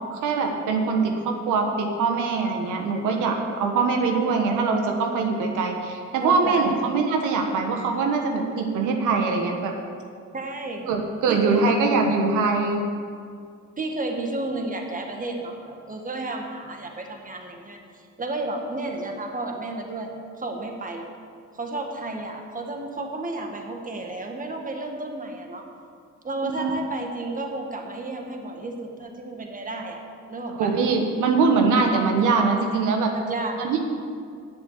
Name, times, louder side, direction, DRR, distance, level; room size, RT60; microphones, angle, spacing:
voice 1, 0.1-9.7 10.9-12.9 26.4-26.7 30.6-33.1 33.6-33.8, right 4 dB, 90° right, 3 dB, 1.3 m, -23 dB
voice 2, 6.2-6.7 10.3-10.9 11.3-11.8 13.8-20.1 20.4-21.1 21.5-25.6 26.2-30.0 30.3-30.8 33.1-33.6, right 2 dB, 25° right, 3 dB, 1.7 m, -32 dB
10.5 x 7.8 x 7.4 m, 2.2 s
cardioid pair, 90°, 30 cm